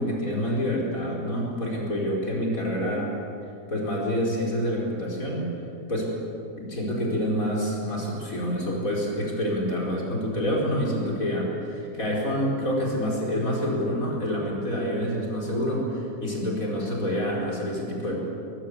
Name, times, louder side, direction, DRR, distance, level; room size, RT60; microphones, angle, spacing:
voice 1, 0.0-3.1 3.7-5.5 5.9-6.1 6.6-18.2, equal, 55° left, -3 dB, 5.4 m, -27 dB
23.0 x 22.0 x 8.3 m, 2.5 s
omnidirectional pair, 1.7 m